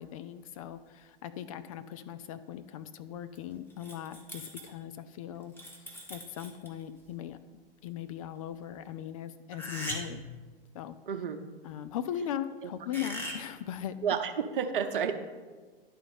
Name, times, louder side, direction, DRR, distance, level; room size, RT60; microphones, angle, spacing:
voice 1, 0.0-7.4 7.8-10.2 10.7-11.0 11.6-14.0, left 10 dB, 35° left, 11 dB, 0.4 m, -39 dB
sound 1, 3.4-3.5 3.7-4.7 5.4-6.8 9.5-10.3 12.9-13.4, equal, 5° left, 1.3 m, -40 dB
voice 2, 11.1-11.4 13.0-13.1 14.0-15.1, right 7 dB, 60° right, 7 dB, 0.8 m, -30 dB
10.5 x 3.9 x 5.4 m, 1.4 s
figure-of-eight pair, 100°, 30 cm